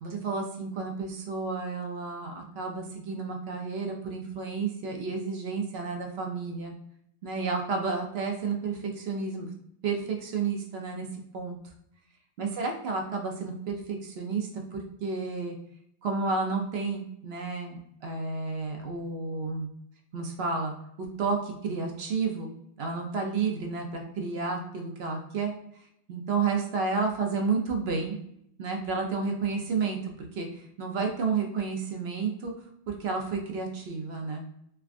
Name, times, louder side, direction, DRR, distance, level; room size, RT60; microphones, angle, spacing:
voice 1, 0.0-6.7 7.2-9.5 9.8-11.1 11.3-11.6 12.4-15.6 16.0-19.7 20.1-20.7 21.0-25.5 26.1-28.2 28.6-32.5 32.9-34.5, right 4 dB, 65° right, 2 dB, 0.8 m, -31 dB
3.4 x 2.2 x 2.4 m, 0.74 s
omnidirectional pair, 1.2 m